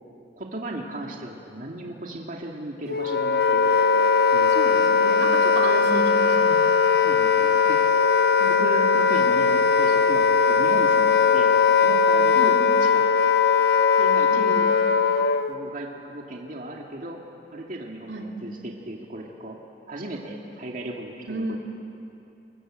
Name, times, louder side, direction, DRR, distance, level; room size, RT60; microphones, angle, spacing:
voice 1, 0.4-3.9 4.3-4.8 7.0-8.0 8.5-11.5 11.8-13.3 14.0-14.7 15.5-17.2 17.5-19.6 19.9-21.6, right 1 dB, 50° right, 0 dB, 2.4 m, -36 dB
Wind instrument woodwind instrument, 2.9-15.5, left 5 dB, 65° left, 1.0 m, -19 dB
voice 2, 4.5-6.6 8.4-9.0 12.4-12.6 14.3-14.5 18.1-18.4 21.3-21.6, right 2 dB, 80° right, 1 dB, 2.8 m, -31 dB
30.0 x 21.0 x 7.6 m, 2.8 s
head